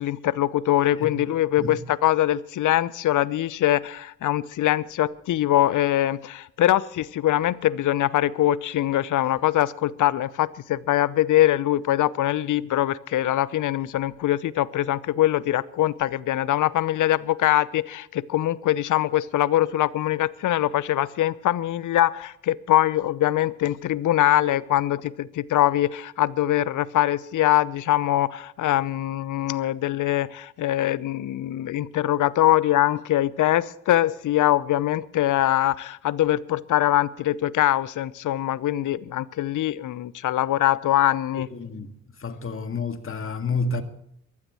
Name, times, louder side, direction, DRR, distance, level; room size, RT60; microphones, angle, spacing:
voice 1, 0.0-41.5, left 13 dB, 55° left, 0.8 m, -23 dB
voice 2, 41.5-41.9 42.2-43.8, left 4 dB, 35° left, 2.0 m, -29 dB
23.0 x 13.5 x 3.1 m
hypercardioid pair, 40°, 37 cm